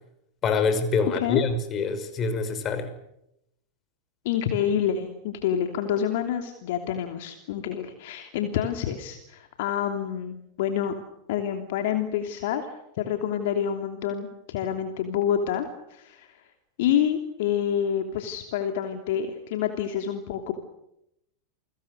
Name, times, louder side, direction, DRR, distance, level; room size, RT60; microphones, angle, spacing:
voice 1, 0.4-2.9, left 4 dB, 30° left, 10 dB, 5.5 m, -25 dB
voice 2, 1.0-1.4 4.2-10.9 11.3-12.6 13.0-16.3 16.8-20.5, left 9 dB, 50° left, 6 dB, 3.0 m, -27 dB
29.5 x 24.0 x 6.8 m, 0.80 s
figure-of-eight pair, 90°, 0 cm